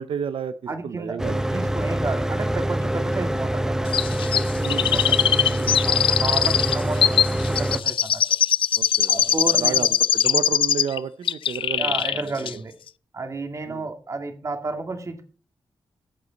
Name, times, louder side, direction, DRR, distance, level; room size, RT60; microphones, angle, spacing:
voice 1, 0.0-0.5 0.8-1.4 4.6-5.0 8.8-9.9 10.1-12.0 12.4-12.5 13.7-13.8, right 7 dB, 85° right, 12 dB, 0.7 m, -31 dB
voice 2, 0.7-1.2 1.5-4.0 4.9-8.2 9.1-9.9 11.8-12.7 13.1-15.2, right 3 dB, 35° right, 7 dB, 2.1 m, -31 dB
Mechanical fan, 1.2-7.8, right 1 dB, 5° right, 0.7 m, -25 dB
Chirp tweet, 3.9-11.0 11.3-12.2 12.5-12.6, left 9 dB, 75° left, 0.4 m, -21 dB
13.0 x 8.2 x 4.0 m, 0.40 s
wide cardioid pair, 130°, 9 cm